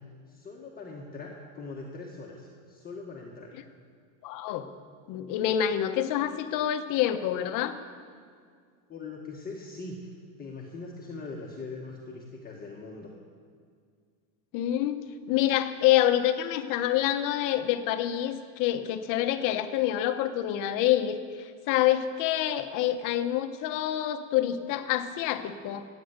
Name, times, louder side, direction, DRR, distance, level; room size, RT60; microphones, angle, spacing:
voice 1, 0.3-3.5 8.9-10.1 10.4-13.1, left 3 dB, 20° left, -2 dB, 1.5 m, -41 dB
voice 2, 4.2-4.7 5.1-7.8 14.5-15.0 15.3-25.9, left 12 dB, 45° left, 9 dB, 1.1 m, -27 dB
15.5 x 9.4 x 8.1 m, 2.1 s
supercardioid pair, 145°, 43 cm